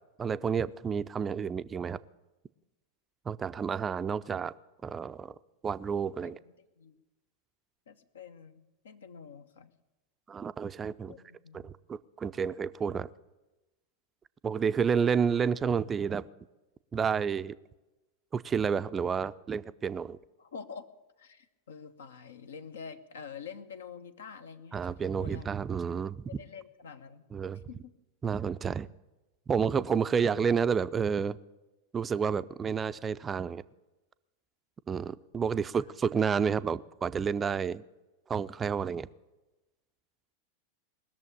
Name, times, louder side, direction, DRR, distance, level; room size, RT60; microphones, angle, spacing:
voice 1, 0.2-2.0 3.3-4.5 4.8-5.4 5.6-6.4 10.3-11.1 11.5-13.1 14.4-16.3 16.9-17.5 18.3-20.2 24.7-26.2 27.3-27.6 28.2-28.9 29.5-31.4 31.9-33.6 34.9-37.8 38.3-39.1, right 6 dB, 20° right, 15 dB, 0.4 m, -30 dB
voice 2, 6.2-7.0 7.9-9.7 11.1-11.8 20.4-20.9 21.2-25.5 26.3-27.3 27.7-27.9, left 6 dB, 65° left, 10 dB, 0.8 m, -47 dB
20.5 x 7.0 x 9.8 m, 1.1 s
figure-of-eight pair, 90°, 0 cm